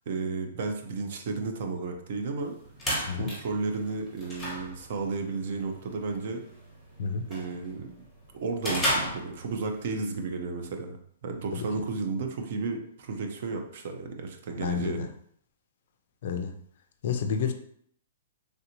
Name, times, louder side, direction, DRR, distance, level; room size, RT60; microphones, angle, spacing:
voice 1, 0.1-2.5 3.1-6.4 7.3-8.1 8.3-11.0 11.2-15.0, right 4 dB, 50° right, 4 dB, 0.5 m, -33 dB
sound 1, 2.4-9.9, equal, ahead, 1.0 m, -35 dB
voice 2, 14.6-15.1 16.2-16.5 17.0-17.5, left 6 dB, 50° left, 8 dB, 0.3 m, -29 dB
3.2 x 2.5 x 2.9 m, 0.64 s
hypercardioid pair, 165°, 0 cm